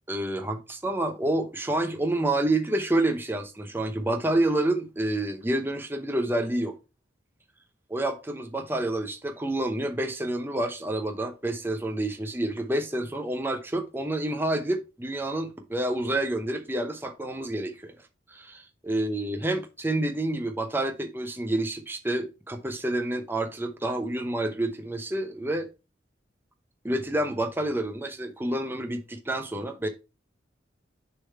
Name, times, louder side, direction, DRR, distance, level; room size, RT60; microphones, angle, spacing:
voice 1, 0.1-6.8 7.9-17.9 18.3-25.7 26.8-29.9, right 1 dB, 10° right, 0.8 m, -28 dB
6.8 x 3.8 x 4.4 m
head